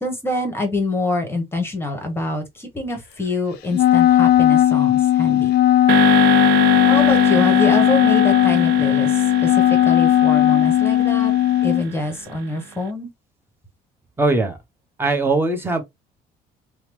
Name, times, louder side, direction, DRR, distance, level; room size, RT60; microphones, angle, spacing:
voice 1, 0.0-5.5 6.8-11.3 11.6-13.1, left 2 dB, 15° left, 1.0 m, -25 dB
Wind instrument woodwind instrument, 3.7-11.9, left 12 dB, 70° left, 0.4 m, -16 dB
sound 1, 5.9-12.3, right 10 dB, 75° right, 0.4 m, -25 dB
voice 2, 14.2-14.6 15.0-15.8, right 2 dB, 15° right, 0.8 m, -20 dB
2.9 x 2.0 x 3.1 m
cardioid pair, 110°, 17 cm